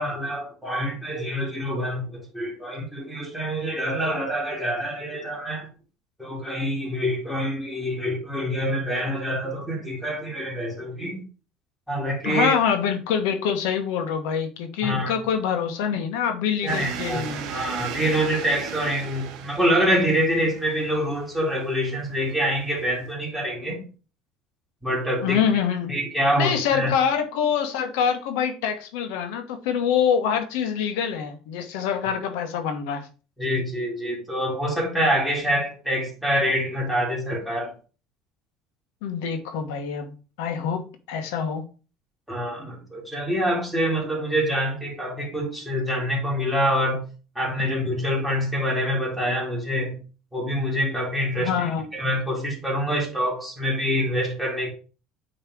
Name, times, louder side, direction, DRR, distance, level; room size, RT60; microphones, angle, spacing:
voice 1, 0.0-5.7 6.2-11.2 11.9-12.5 14.8-15.1 16.6-23.8 24.8-25.4 25.9-26.9 33.4-37.7 42.3-47.0 47.4-50.0 50.3-51.6 51.9-54.7, equal, ahead, 2.3 m, -26 dB
voice 2, 12.2-17.5 25.2-25.9 26.4-33.1 39.0-41.6 51.4-51.9, left 7 dB, 90° left, 1.3 m, -25 dB
sound 1, 16.7-23.1, right 7 dB, 60° right, 1.2 m, -37 dB
8.8 x 3.3 x 4.7 m
cardioid pair, 140°, 0 cm